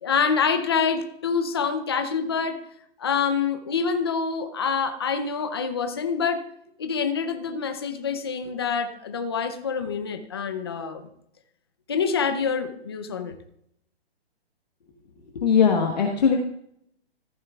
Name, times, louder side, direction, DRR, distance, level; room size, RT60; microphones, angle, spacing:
voice 1, 0.0-2.7 3.0-6.4 6.8-11.0 11.9-13.4, left 6 dB, 25° left, 8 dB, 0.6 m, -26 dB
voice 2, 15.3-16.4, left 6 dB, 40° left, 2 dB, 1.3 m, -20 dB
15.0 x 13.0 x 2.4 m, 0.72 s
hypercardioid pair, 175°, 32 cm